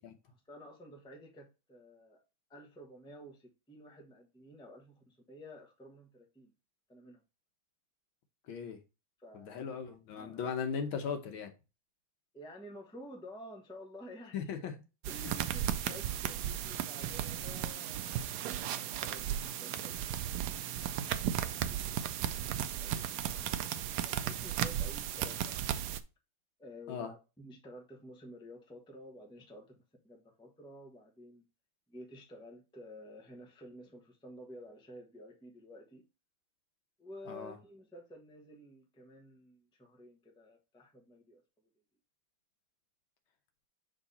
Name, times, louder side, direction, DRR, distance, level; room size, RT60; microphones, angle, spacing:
voice 1, 0.3-2.2 2.5-6.5 6.9-7.2 9.2-10.6 12.3-14.7 15.1-18.2 18.7-22.1 22.4-25.6 26.6-29.8 30.0-31.4 31.9-36.0 37.0-41.4, equal, 5° left, 0.7 m, -52 dB
voice 2, 8.5-8.8 9.3-11.5 14.3-14.7 15.2-15.3 26.9-27.1 37.3-37.6, left 6 dB, 70° left, 1.7 m, -38 dB
sound 1, 15.0-26.0, right 10 dB, 90° right, 0.8 m, -35 dB
6.4 x 3.9 x 4.1 m
omnidirectional pair, 2.4 m